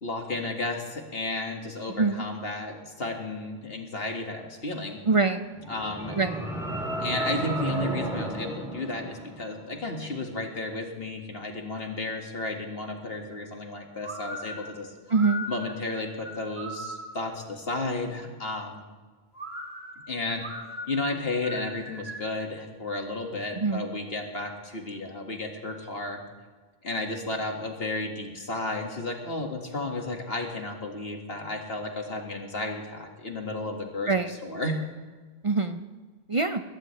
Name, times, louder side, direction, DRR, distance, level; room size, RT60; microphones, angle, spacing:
voice 1, 0.0-5.0 5.7-6.2 7.0-14.9 15.5-18.8 20.1-20.4 20.9-26.2 26.8-34.8, left 2 dB, 70° left, 2 dB, 2.2 m, -33 dB
voice 2, 5.1-5.4 6.2-6.3 15.1-15.4 23.6-23.9 34.1-34.3 35.4-35.8 36.3-36.6, right 4 dB, 40° right, 8 dB, 0.6 m, -24 dB
sound 1, 5.5-9.7, right 1 dB, 5° right, 3.4 m, -32 dB
sound 2, 14.0-17.3 19.3-22.4, equal, 85° right, 2.7 m, -39 dB
20.5 x 17.0 x 3.3 m, 1.4 s
omnidirectional pair, 1.0 m